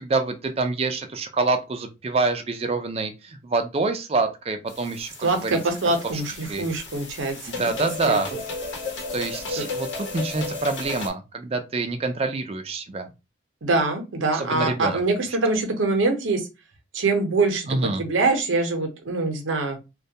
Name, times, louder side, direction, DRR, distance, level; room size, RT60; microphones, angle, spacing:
voice 1, 0.0-5.6 6.0-6.6 7.5-8.3 9.1-13.1 14.3-15.0 17.7-18.0, right 3 dB, 30° right, 7 dB, 0.3 m, -26 dB
sound 1, 4.7-11.1, left 3 dB, 70° left, 0.9 m, -34 dB
voice 2, 5.2-7.6 8.0-8.4 9.6-9.7 13.6-16.5 16.9-17.7 18.0-19.8, right 3 dB, 85° right, 5 dB, 0.6 m, -24 dB
2.2 x 2.1 x 2.7 m, 0.26 s
head